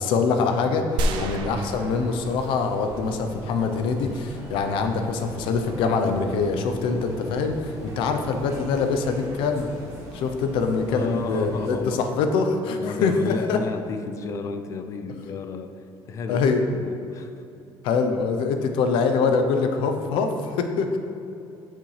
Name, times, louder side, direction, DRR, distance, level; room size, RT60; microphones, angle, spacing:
voice 1, 0.0-9.7 10.1-13.6 16.3-16.6 17.8-21.0, left 4 dB, 70° left, 6 dB, 0.7 m, -24 dB
sound 1, 1.0-2.9 3.2-3.3, right 1 dB, 60° right, 0.5 m, -29 dB
voice 2, 1.1-1.4 10.9-12.1 12.8-17.3, left 4 dB, 35° left, 8 dB, 0.4 m, -32 dB
sound 2, 1.6-11.7, right 1 dB, 30° right, 1.3 m, -41 dB
8.9 x 5.9 x 3.3 m, 2.6 s
cardioid pair, 170°, 9 cm